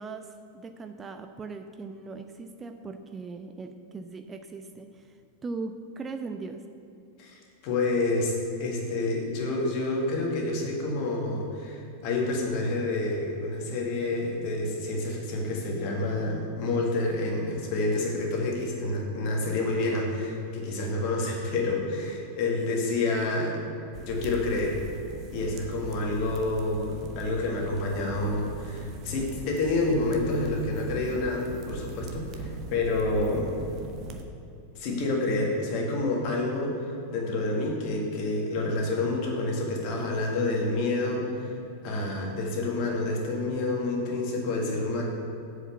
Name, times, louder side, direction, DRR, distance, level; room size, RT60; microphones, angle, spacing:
voice 1, 0.0-6.7, right 4 dB, 20° right, 7 dB, 0.4 m, -39 dB
voice 2, 7.2-8.3 8.6-23.6 24.0-24.8 25.3-33.5 34.8-41.6 41.8-45.0, left 2 dB, 45° left, -1 dB, 1.9 m, -28 dB
sound 1, 23.9-34.2, right 2 dB, 35° right, 0.8 m, -40 dB
7.7 x 5.0 x 6.9 m, 2.7 s
figure-of-eight pair, 90°, 0 cm